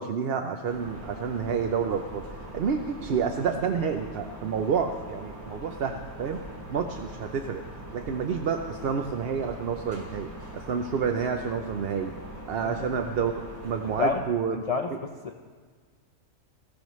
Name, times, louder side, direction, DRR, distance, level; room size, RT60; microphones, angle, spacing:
voice 1, 0.0-6.4 6.7-7.6 7.9-12.1 12.5-13.3 13.6-14.6 14.9-15.0, right 6 dB, 55° right, 5 dB, 0.8 m, -29 dB
sound 1, 0.7-14.1, right 1 dB, 35° right, 2.4 m, -42 dB
voice 2, 14.5-15.4, left 4 dB, 55° left, 4 dB, 0.4 m, -29 dB
18.0 x 15.5 x 3.1 m, 1.5 s
omnidirectional pair, 1.4 m